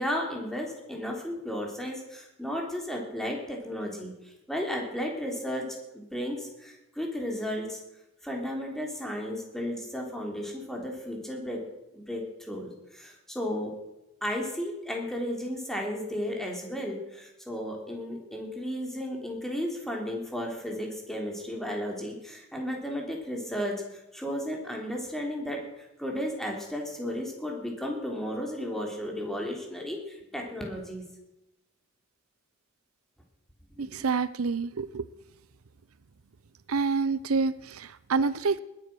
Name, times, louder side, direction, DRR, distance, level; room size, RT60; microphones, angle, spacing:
voice 1, 0.0-7.8 8.2-11.6 11.9-13.7 14.2-31.0 33.8-34.0, equal, ahead, 0 dB, 3.4 m, -34 dB
voice 2, 33.8-35.1 36.7-38.6, right 4 dB, 85° right, 16 dB, 0.6 m, -27 dB
20.5 x 9.7 x 6.2 m, 0.93 s
head